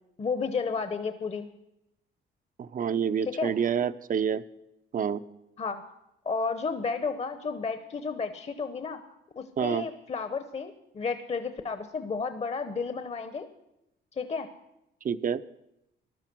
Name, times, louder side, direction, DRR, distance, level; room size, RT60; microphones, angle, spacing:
voice 1, 0.2-1.5 3.3-3.5 5.6-5.8 6.2-9.0 9.4-13.5 14.2-14.5, left 4 dB, 35° left, 9 dB, 0.9 m, -32 dB
voice 2, 2.6-4.4 4.9-5.2 9.6-9.8 15.0-15.4, right 7 dB, 45° right, 15 dB, 0.6 m, -27 dB
15.0 x 11.5 x 6.1 m, 0.86 s
cardioid pair, 90°, 20 cm